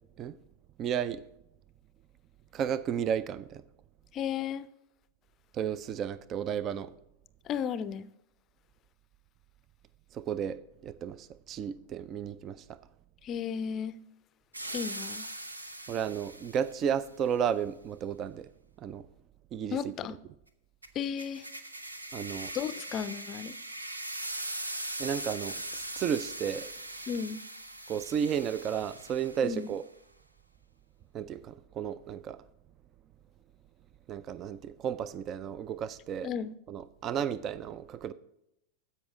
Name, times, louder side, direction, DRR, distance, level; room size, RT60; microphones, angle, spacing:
voice 1, 0.8-1.2 2.5-3.6 5.5-6.9 10.1-12.6 15.9-18.5 18.8-19.1 19.5-19.9 22.1-22.5 25.0-26.7 27.9-29.8 31.1-32.4 34.1-36.3 36.7-38.1, right 8 dB, 30° right, 0.4 m, -33 dB
voice 2, 4.1-4.7 7.5-8.1 13.2-14.0 14.7-15.3 19.7-20.1 20.9-21.5 22.5-23.6 27.1-27.4 29.4-29.7 36.2-36.5, left 7 dB, 30° left, 0.5 m, -34 dB
sound 1, 14.5-16.9 20.8-29.8, right 1 dB, 80° right, 0.7 m, -40 dB
15.0 x 5.5 x 3.6 m
figure-of-eight pair, 90°, 0 cm